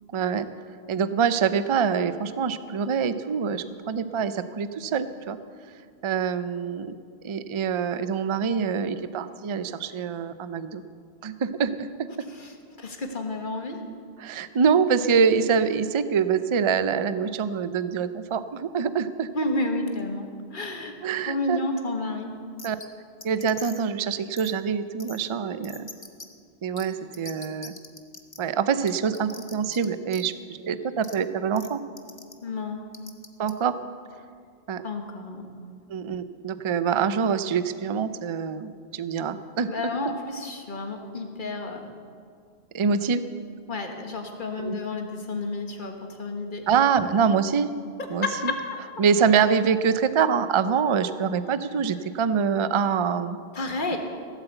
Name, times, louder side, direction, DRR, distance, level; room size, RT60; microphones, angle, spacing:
voice 1, 0.1-0.5 0.9-5.4 6.0-6.9 7.2-10.8 11.2-12.1 14.2-19.3 21.0-21.6 22.6-22.8 23.2-25.9 26.6-27.7 28.4-30.3 30.6-31.8 33.4-33.7 34.7-34.8 35.9-40.1 42.7-43.2 44.6-44.8 46.7-47.7 48.1-48.5 49.0-53.4 53.9-54.0, right 6 dB, 40° right, 12 dB, 0.5 m, -25 dB
voice 2, 12.3-13.8 19.3-20.9 21.3-22.3 32.4-32.9 34.8-35.5 39.7-41.8 43.7-46.6 48.0-48.6 53.5-54.0, left 2 dB, 50° left, 4 dB, 1.6 m, -31 dB
sound 1, 22.6-22.9 23.2-23.9 24.4-24.5 25.0-25.2 25.6-26.3 26.8-26.9 27.1-28.4 28.9-29.8 30.1-30.2 31.0-31.1 31.6-31.7 32.0-32.3 32.9-33.5, left 3 dB, 25° left, 0.8 m, -42 dB
16.0 x 8.3 x 8.0 m, 2.2 s
omnidirectional pair, 1.1 m